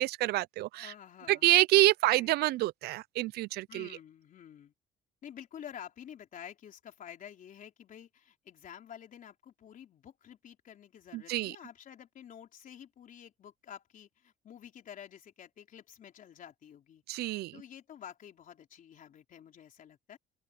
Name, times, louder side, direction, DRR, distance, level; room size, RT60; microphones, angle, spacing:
voice 1, 0.0-0.9 1.3-3.9 11.1-11.5 17.1-17.5, right 17 dB, 70° right, 0.4 m, -27 dB
voice 2, 0.7-1.5 2.0-2.3 3.7-4.7 5.2-20.2, left 9 dB, 55° left, 3.6 m, -50 dB
open air
cardioid pair, 110°, 17 cm